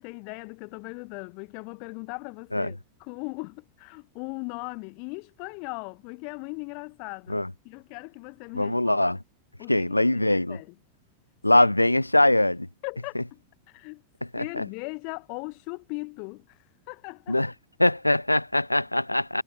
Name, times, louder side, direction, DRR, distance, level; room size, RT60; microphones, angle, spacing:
voice 1, 0.0-9.1 9.6-10.8 11.5-11.7 12.8-13.4 13.7-14.0 14.4-16.6 16.9-17.4, left 36 dB, 45° left, 7.8 m, -39 dB
voice 2, 8.6-9.2 9.7-10.6 11.4-12.7 14.3-14.6 17.3-17.5 17.8-19.4, left 1 dB, 85° left, 1.0 m, -22 dB
figure-of-eight pair, 90°, 0 cm